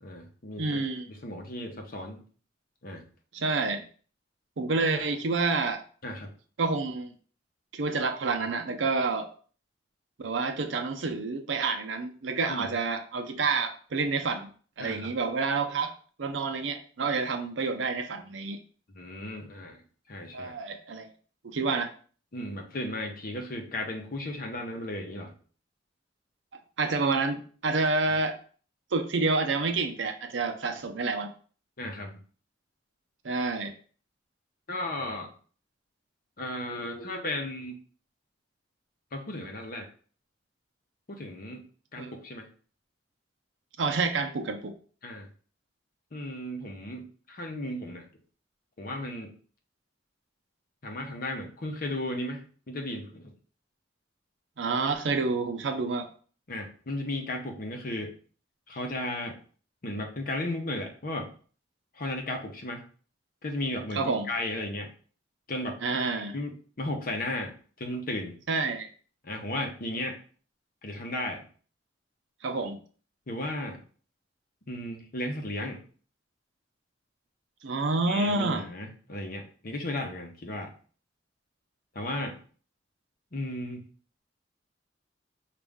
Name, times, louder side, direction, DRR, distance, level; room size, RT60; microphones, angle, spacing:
voice 1, 0.0-2.2 2.8-3.1 4.9-5.0 6.0-6.3 12.5-12.7 14.8-15.1 18.9-19.8 20.1-20.6 22.3-25.3 31.8-32.1 34.7-35.3 36.4-37.8 39.1-39.9 41.1-41.6 41.9-42.5 45.0-45.3 46.1-48.1 48.8-49.3 50.8-53.3 56.5-58.1 58.7-59.4 59.8-61.3 61.9-62.8 63.4-64.9 65.5-65.8 66.3-68.4 69.2-70.2 70.8-71.4 73.3-73.8 74.7-75.8 78.1-80.7 81.9-82.4 83.3-83.9, left 1 dB, 50° left, 2 dB, 0.8 m, -35 dB
voice 2, 0.6-1.1 3.3-3.9 4.6-5.8 6.6-7.1 7.7-9.3 10.2-14.5 14.8-15.9 16.2-18.6 20.3-21.1 21.4-21.9 26.8-28.4 28.9-31.3 33.2-33.7 42.0-42.1 43.8-44.7 54.6-56.1 63.9-64.3 65.8-66.4 68.5-68.9 72.4-72.8 77.6-78.6, right 3 dB, 80° right, 7 dB, 0.6 m, -28 dB
5.1 x 2.5 x 3.5 m, 0.42 s
head